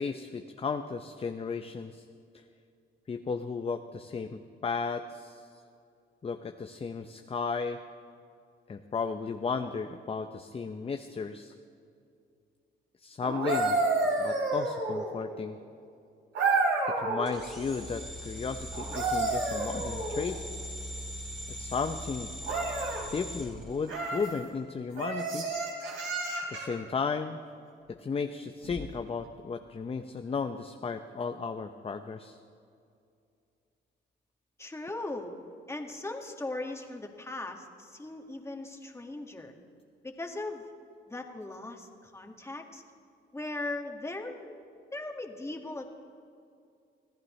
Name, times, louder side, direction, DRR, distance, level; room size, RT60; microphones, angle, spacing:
voice 1, 0.0-2.0 3.1-5.4 6.2-7.8 8.7-11.5 13.0-13.8 14.2-15.6 17.0-20.4 21.5-22.3 23.1-25.5 26.5-27.4 27.9-32.4, left 5 dB, 30° left, 6 dB, 0.7 m, -34 dB
sound 1, 13.2-15.2 16.3-17.3 18.7-20.3 22.4-23.0 23.9-24.3 25.0-26.8 28.6-28.8, right 3 dB, 80° right, 4.1 m, -30 dB
sound 2, 17.3-24.4, equal, 5° right, 3.2 m, -41 dB
voice 2, 34.6-35.3 35.7-39.5 40.0-40.7 41.1-42.8 43.3-44.5 44.9-45.9, left 2 dB, 15° left, 3 dB, 1.9 m, -38 dB
25.0 x 15.5 x 3.2 m, 2.5 s
cardioid pair, 90°, 20 cm